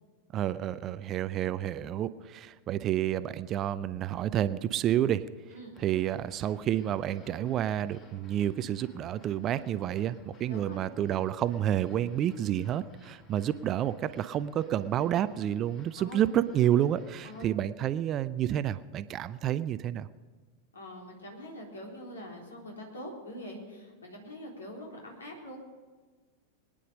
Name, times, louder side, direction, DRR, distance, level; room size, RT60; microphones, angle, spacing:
voice 1, 0.3-5.2 5.8-20.1, right 11 dB, 30° right, 14 dB, 0.5 m, -29 dB
sound 1, 5.7-17.5, left 3 dB, 35° left, 2.2 m, -57 dB
voice 2, 10.5-10.8 16.0-16.2 17.2-17.5 20.7-25.6, left 1 dB, 70° left, -1 dB, 3.8 m, -44 dB
22.5 x 10.0 x 5.2 m, 1.4 s
figure-of-eight pair, 90°, 0 cm